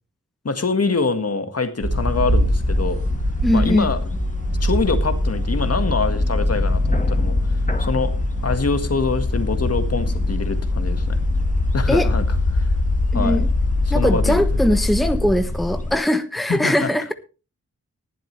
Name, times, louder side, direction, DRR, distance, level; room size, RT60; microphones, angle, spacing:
voice 1, 0.4-3.0 3.5-4.0 4.6-7.4 7.8-8.1 8.4-11.2 11.7-12.7 13.1-13.4 13.9-14.6 16.5-16.9, left 4 dB, 45° left, 9 dB, 1.8 m, -24 dB
sound 1, 1.8-15.0, right 2 dB, 40° right, 2.4 m, -29 dB
sound 2, 1.9-15.9, left 2 dB, 25° left, 1.6 m, -22 dB
voice 2, 3.4-3.9 11.9-12.1 13.1-13.5 13.9-17.1, equal, ahead, 9 dB, 1.2 m, -20 dB
20.0 x 7.7 x 3.3 m, 0.32 s
cardioid pair, 45°, 33 cm